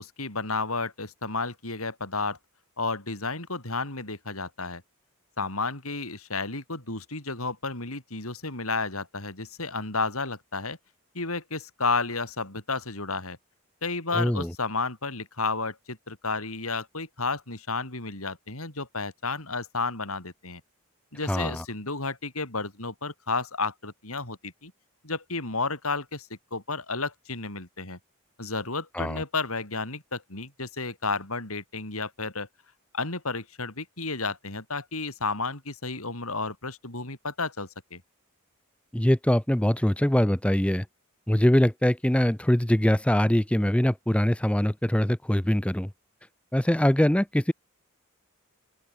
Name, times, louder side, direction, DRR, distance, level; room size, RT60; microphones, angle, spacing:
voice 1, 0.0-2.4 2.8-4.8 5.4-10.8 11.1-13.4 13.8-20.6 21.1-24.7 25.0-28.0 28.4-32.5 32.9-38.0, left 3 dB, 75° left, 7.5 m, -32 dB
voice 2, 14.1-14.5 21.3-21.6 28.9-29.2 38.9-40.8 41.3-45.9 46.5-47.5, equal, 5° left, 0.6 m, -23 dB
open air
head